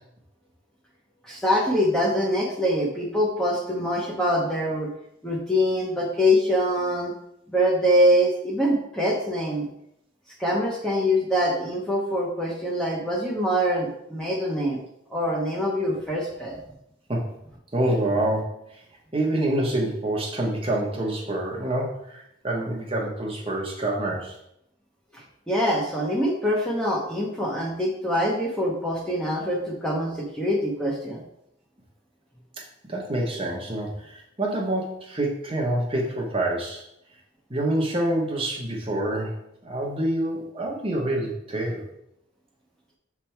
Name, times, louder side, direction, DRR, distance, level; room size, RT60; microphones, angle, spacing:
voice 1, 1.2-4.9 5.2-7.1 7.5-9.7 10.4-14.8 15.1-16.6 25.1-31.2, equal, 5° left, -3 dB, 0.9 m, -24 dB
voice 2, 17.7-18.8 19.1-24.4 32.9-36.8 37.5-41.8, right 1 dB, 25° right, -2 dB, 1.0 m, -27 dB
6.7 x 3.5 x 4.4 m, 0.78 s
head